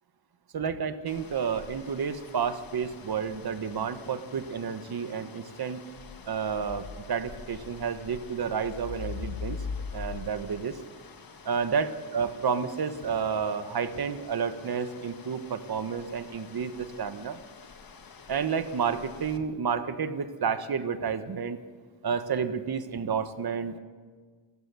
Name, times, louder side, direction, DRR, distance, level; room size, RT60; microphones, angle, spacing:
voice 1, 0.5-5.8 6.3-9.6 9.9-10.8 11.4-17.4 18.3-21.6 22.0-23.8, right 6 dB, 50° right, 10 dB, 1.4 m, -30 dB
sound 1, 1.1-19.4, left 5 dB, 45° left, 1.6 m, -44 dB
29.5 x 16.0 x 7.0 m, 1.5 s
wide cardioid pair, 155°, 49 cm